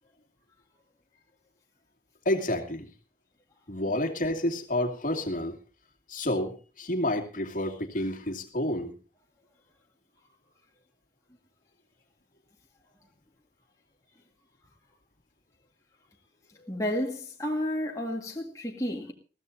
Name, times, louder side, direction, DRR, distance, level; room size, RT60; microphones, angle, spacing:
voice 1, 2.3-2.9 3.7-5.6 6.1-8.9 16.6-16.7, left 1 dB, 50° left, 2.4 m, -29 dB
voice 2, 16.7-19.1, left 1 dB, 20° left, 1.9 m, -31 dB
21.0 x 15.0 x 2.7 m
head